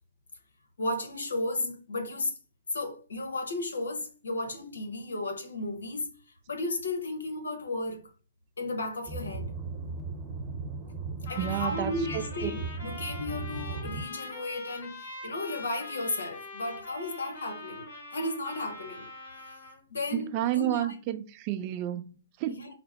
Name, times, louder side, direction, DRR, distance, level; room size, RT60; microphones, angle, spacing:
voice 1, 0.8-2.3 2.7-6.1 6.5-8.0 8.6-9.5 11.3-17.9 18.1-19.1 19.9-20.9 22.5-22.7, left 2 dB, 75° left, 1.0 m, -34 dB
sound 1, 9.1-14.0, right 3 dB, 20° right, 0.9 m, -37 dB
Trumpet, 11.2-19.8, left 3 dB, 55° left, 1.8 m, -43 dB
voice 2, 11.3-12.5 20.1-22.7, right 13 dB, 35° right, 0.4 m, -31 dB
4.3 x 2.0 x 4.3 m
figure-of-eight pair, 125°, 0 cm